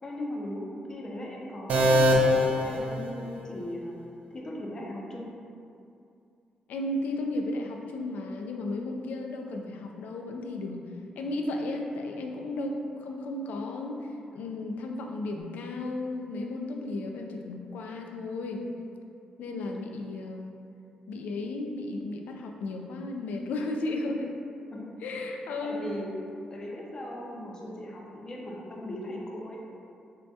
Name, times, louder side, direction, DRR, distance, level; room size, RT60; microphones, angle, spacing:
voice 1, 0.0-4.0 4.3-5.3 24.7-24.9 25.6-26.1 26.5-29.6, left 1 dB, 25° left, -2 dB, 0.5 m, -38 dB
sound 1, 1.7-3.6, left 1 dB, 60° right, 0.4 m, -23 dB
voice 2, 6.7-10.8 11.2-18.6 19.4-20.6 21.1-24.4 25.0-25.9, left 2 dB, 90° left, 2 dB, 0.3 m, -34 dB
4.5 x 2.2 x 2.6 m, 2.5 s
wide cardioid pair, 165°, 3 cm